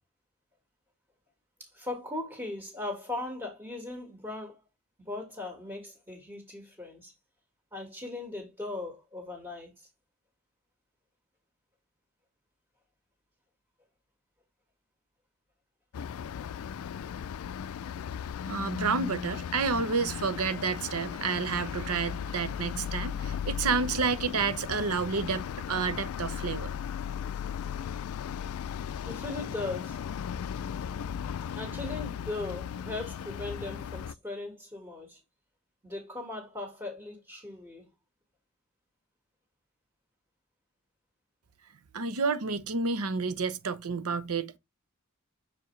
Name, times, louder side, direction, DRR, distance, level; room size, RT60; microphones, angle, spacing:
voice 1, 1.6-4.6 5.0-7.1 7.7-9.9 29.0-30.1 31.5-35.2 35.8-37.9, left 2 dB, 10° right, 1.7 m, -38 dB
sound 1, 15.9-34.1, left 8 dB, 75° left, 0.3 m, -36 dB
voice 2, 18.5-26.7 41.9-44.6, right 5 dB, 85° right, 0.8 m, -30 dB
7.0 x 4.6 x 3.2 m
head